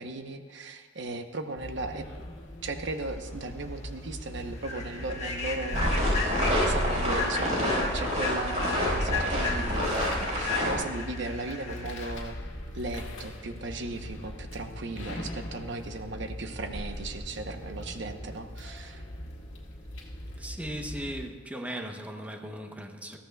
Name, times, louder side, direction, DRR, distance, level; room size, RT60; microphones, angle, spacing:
voice 1, 0.0-2.3 2.6-9.9 10.2-12.4 12.7-19.0, right 2 dB, 65° right, 6 dB, 0.9 m, -37 dB
sound 1, 1.6-21.3, equal, 80° left, 1.8 m, -39 dB
Human voice / Train, 3.3-3.4 3.8-4.0 4.5-12.1, left 3 dB, 35° left, 1.4 m, -36 dB
sound 2, 5.7-10.7, equal, 40° right, 4.6 m, -28 dB
voice 2, 20.4-23.2, equal, 10° right, 3 dB, 0.8 m, -38 dB
20.0 x 14.0 x 2.3 m, 1.4 s
head